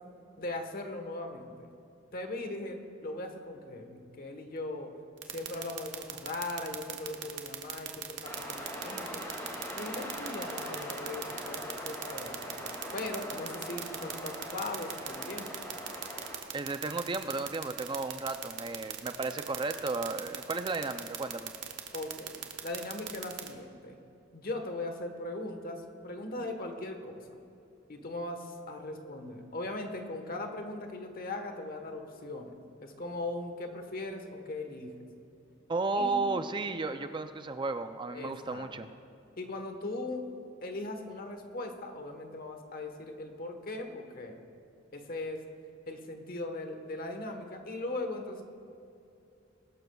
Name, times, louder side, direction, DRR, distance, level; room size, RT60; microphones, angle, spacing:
voice 1, 0.4-1.7 2.1-4.9 5.3-9.2 9.7-15.5 21.9-24.0 24.3-27.3 27.9-32.6 32.8-35.1 35.9-36.3 38.1-38.8 39.4-40.3 40.6-44.4 44.9-45.4 45.9-48.4, left 2 dB, 50° left, 5 dB, 1.2 m, -39 dB
sound 1, 5.2-23.5, right 11 dB, 65° right, 1.0 m, -38 dB
sound 2, 8.2-16.4, equal, 15° left, 2.2 m, -41 dB
voice 2, 16.5-21.5 35.7-38.9, right 3 dB, 25° right, 9 dB, 0.4 m, -33 dB
22.5 x 12.0 x 2.3 m, 2.7 s
head